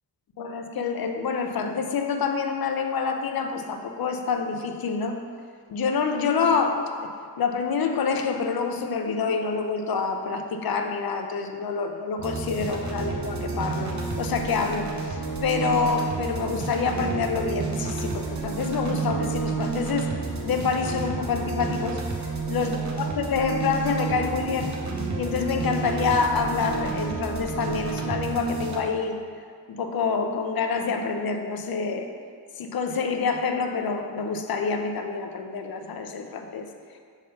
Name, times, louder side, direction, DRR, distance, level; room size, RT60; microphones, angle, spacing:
voice 1, 0.4-5.2 5.7-7.1 7.4-20.1 20.4-22.0 22.5-24.8 25.2-29.2 29.7-32.1 32.6-36.7, left 5 dB, 55° left, 5 dB, 0.7 m, -27 dB
sound 1, 12.2-28.8, right 4 dB, 40° right, 0.8 m, -30 dB
5.4 x 3.6 x 5.6 m, 2.1 s
cardioid pair, 105°, 43 cm